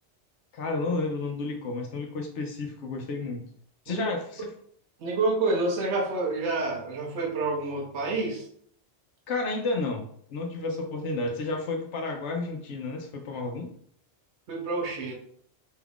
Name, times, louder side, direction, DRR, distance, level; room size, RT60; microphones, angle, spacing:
voice 1, 0.5-3.4 3.9-4.5 9.3-13.7, left 3 dB, 80° left, 3 dB, 0.9 m, -31 dB
voice 2, 5.0-8.5 14.5-15.1, right 3 dB, 75° right, 0 dB, 1.0 m, -28 dB
4.3 x 2.3 x 3.5 m, 0.63 s
omnidirectional pair, 1.2 m